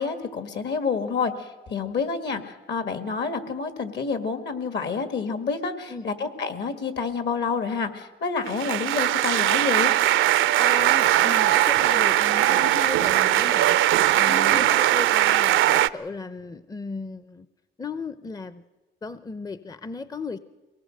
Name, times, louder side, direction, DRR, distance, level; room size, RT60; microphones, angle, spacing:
voice 1, 0.0-9.9 14.3-14.7, left 5 dB, 60° left, 9 dB, 2.1 m, -28 dB
sound 1, 8.5-15.9, right 13 dB, 80° right, 0.6 m, -20 dB
voice 2, 10.6-13.8 14.2-17.5 17.8-18.6 19.0-20.4, left 4 dB, 20° left, 14 dB, 0.6 m, -35 dB
23.5 x 18.5 x 6.6 m, 1.2 s
cardioid pair, 90°, 20 cm